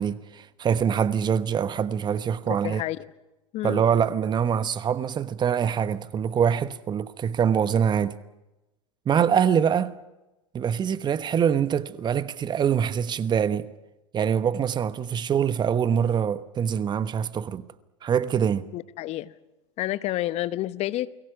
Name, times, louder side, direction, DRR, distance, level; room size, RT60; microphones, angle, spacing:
voice 1, 0.0-2.8 3.6-8.2 9.1-9.9 10.5-13.7 14.1-17.7 18.0-18.7, right 8 dB, 25° right, 1.1 m, -24 dB
voice 2, 2.6-3.0 3.5-3.8 18.7-19.3 19.8-21.1, left 15 dB, 40° left, 1.0 m, -29 dB
29.0 x 22.5 x 6.0 m
hypercardioid pair, 90°, 16 cm